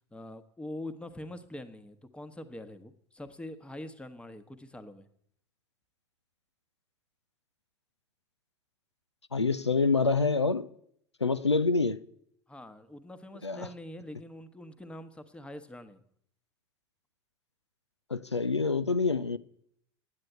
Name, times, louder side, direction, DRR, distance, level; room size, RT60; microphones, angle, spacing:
voice 1, 0.1-5.1 12.5-16.0, left 1 dB, 5° left, 1.1 m, -44 dB
voice 2, 9.3-10.7 11.2-12.0 13.4-13.7 18.1-19.4, left 4 dB, 90° left, 0.4 m, -26 dB
9.7 x 8.9 x 7.9 m
figure-of-eight pair, 75°, 14 cm